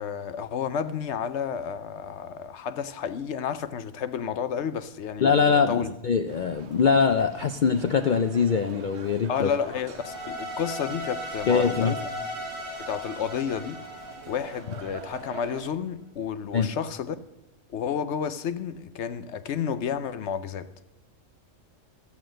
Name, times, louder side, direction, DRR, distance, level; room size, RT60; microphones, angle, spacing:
voice 1, 0.0-5.9 9.3-12.1 12.8-13.8 14.3-17.2 17.7-20.7, left 7 dB, 65° left, 0.8 m, -31 dB
voice 2, 5.2-9.5 11.5-11.9 16.5-16.7, left 6 dB, 85° left, 0.4 m, -23 dB
sound 1, 6.3-15.7, right 6 dB, 55° right, 1.2 m, -46 dB
sound 2, 9.9-15.1, left 1 dB, 25° left, 6.9 m, -36 dB
14.5 x 7.1 x 7.6 m
omnidirectional pair, 1.4 m